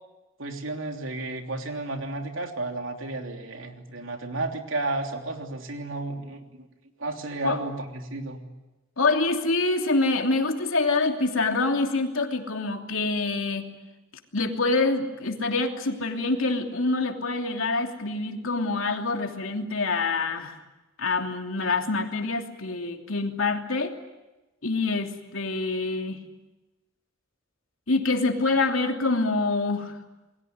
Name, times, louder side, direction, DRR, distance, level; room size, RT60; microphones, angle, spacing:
voice 1, 0.4-6.4 7.0-8.4, right 2 dB, 80° right, 4 dB, 3.2 m, -32 dB
voice 2, 9.0-13.7 14.3-20.5 21.0-24.0 24.6-26.2 27.9-30.0, left 3 dB, 85° left, 4 dB, 3.0 m, -26 dB
28.5 x 22.0 x 9.6 m, 1.1 s
head